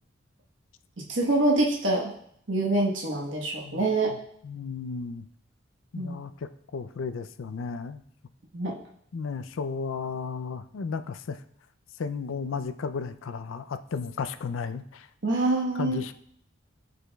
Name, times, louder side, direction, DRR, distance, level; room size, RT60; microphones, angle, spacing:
voice 1, 1.1-2.1 2.5-4.1 5.9-6.2 8.5-8.8 15.2-16.0, right 2 dB, 75° right, -3 dB, 1.2 m, -25 dB
voice 2, 4.4-5.2 5.9-8.0 9.1-11.4 12.0-15.1 15.8-16.1, left 5 dB, 85° left, 12 dB, 0.4 m, -34 dB
13.5 x 5.0 x 2.3 m, 0.68 s
head